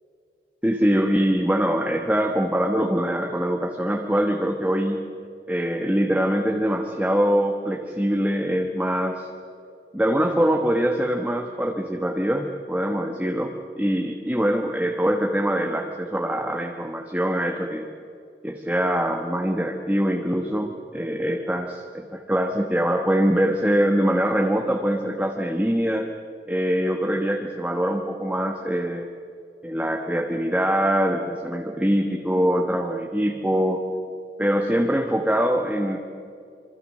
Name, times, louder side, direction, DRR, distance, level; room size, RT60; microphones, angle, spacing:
voice 1, 0.6-5.0 5.5-9.3 9.9-17.9 18.4-26.1 26.5-29.1 29.6-33.8 34.4-36.0, equal, 10° right, 2 dB, 1.3 m, -23 dB
26.5 x 25.0 x 6.6 m, 2.4 s
head